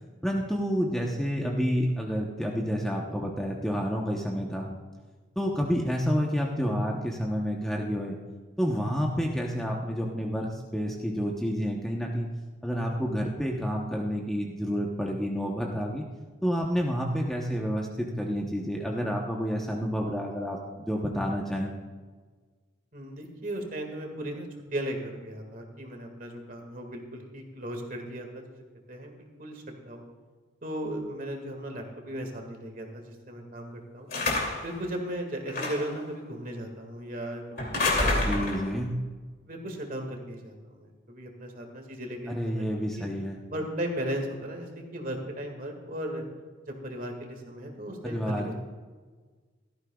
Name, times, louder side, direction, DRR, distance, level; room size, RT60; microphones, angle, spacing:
voice 1, 0.2-4.7 5.4-8.2 8.6-12.3 12.6-16.0 16.4-21.7 38.2-38.9 42.3-43.4 48.0-48.5, equal, ahead, -1 dB, 0.9 m, -29 dB
voice 2, 22.9-28.6 28.9-30.1 30.6-34.1 34.6-38.8 39.5-42.7 43.0-43.1 43.5-46.2 46.7-48.5, right 1 dB, 45° right, 3 dB, 2.0 m, -36 dB
sound 1, 34.1-34.7 35.5-36.0 37.6-38.7, left 2 dB, 45° left, 2.8 m, -27 dB
16.5 x 13.5 x 2.4 m, 1.4 s
head